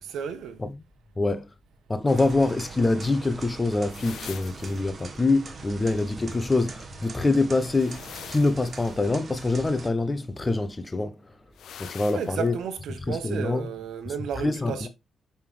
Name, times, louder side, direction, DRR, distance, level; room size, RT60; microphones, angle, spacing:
voice 1, 0.0-0.6 8.1-8.2 11.8-14.9, right 7 dB, 70° right, 1.2 m, -33 dB
voice 2, 1.2-1.5 1.9-11.2 11.8-12.6 13.1-13.6 14.4-14.9, left 2 dB, 20° left, 0.9 m, -25 dB
sound 1, 2.1-9.9, right 4 dB, 40° right, 1.5 m, -42 dB
sound 2, 3.9-4.8 7.7-9.0 11.6-12.4, left 9 dB, 70° left, 0.7 m, -43 dB
6.9 x 5.6 x 3.3 m
cardioid pair, 90°, 0 cm